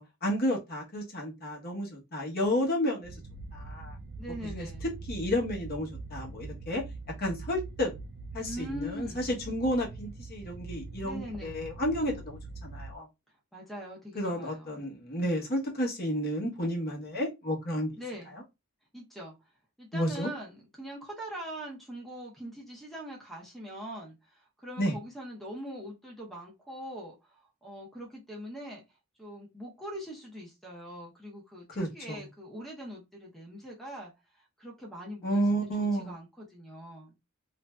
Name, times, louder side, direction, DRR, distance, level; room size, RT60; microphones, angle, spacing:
voice 1, 0.0-3.2 3.5-4.0 4.4-6.8 7.2-7.9 8.3-13.1 14.1-17.9 19.9-20.3 24.8-24.9 31.7-32.2 35.2-36.1, equal, 50° left, 0.9 m, -31 dB
sound 1, 3.0-13.0, right 3 dB, 45° right, 0.3 m, -43 dB
voice 2, 4.2-4.9 8.4-9.3 11.0-11.7 13.5-14.9 18.0-18.4 18.9-19.4 19.8-28.8 29.2-35.4 35.8-37.2, equal, ahead, 0.6 m, -42 dB
3.0 x 2.5 x 2.2 m
head